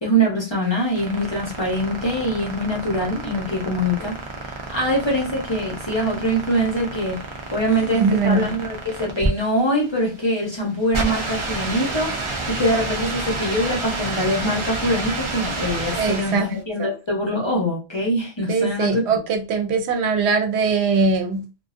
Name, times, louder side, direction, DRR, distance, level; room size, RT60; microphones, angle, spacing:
voice 1, 0.0-7.2 7.5-12.1 12.5-19.2, equal, 30° left, 0.7 m, -23 dB
sound 1, 0.6-16.5, right 2 dB, 40° right, 0.4 m, -30 dB
voice 2, 7.9-8.6 15.9-16.4 16.8-17.0 18.5-21.4, right 4 dB, 80° right, 0.8 m, -21 dB
2.5 x 2.2 x 2.4 m
omnidirectional pair, 1.1 m